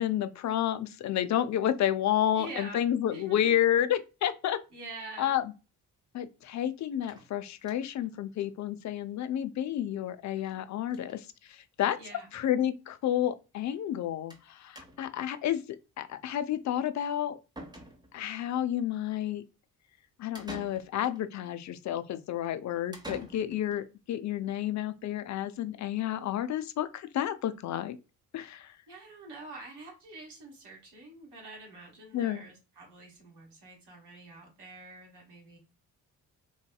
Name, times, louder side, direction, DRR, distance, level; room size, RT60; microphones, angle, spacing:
voice 1, 0.0-4.6 5.2-5.4 6.1-12.0 12.3-15.6 16.0-17.3 18.1-19.4 20.2-28.0 28.3-28.7 32.1-32.5, left 11 dB, 40° left, 0.4 m, -30 dB
voice 2, 2.3-2.8 3.1-3.6 4.7-5.3 12.0-12.3 28.6-35.6, right 2 dB, 55° right, 1.5 m, -46 dB
sound 1, 7.0-8.1 8.4-8.5 8.8-8.9 9.1-9.2 10.4-10.6 10.9-11.2 12.1-12.2 12.5-12.6 14.3-14.5 14.8-15.2 17.0-17.1 17.6-18.3 20.4-21.2 22.9-23.8, right 1 dB, 10° right, 1.0 m, -47 dB
3.1 x 2.6 x 2.2 m
hypercardioid pair, 40°, 48 cm